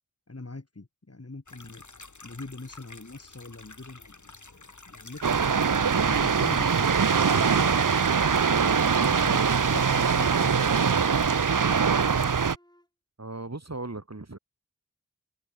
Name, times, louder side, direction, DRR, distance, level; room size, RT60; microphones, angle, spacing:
voice 1, 0.3-1.8 2.2-9.4 9.7-11.4, left 2 dB, 50° left, 3.5 m, -43 dB
sound 1, 1.5-11.6, left 3 dB, 70° left, 5.8 m, -49 dB
sound 2, 5.2-12.6, right 6 dB, 85° right, 0.9 m, -23 dB
Wind instrument woodwind instrument, 12.5-12.9, left 1 dB, 15° left, 5.7 m, -50 dB
voice 2, 13.2-14.4, right 2 dB, 55° right, 6.2 m, -37 dB
wide cardioid pair, 40°, 31 cm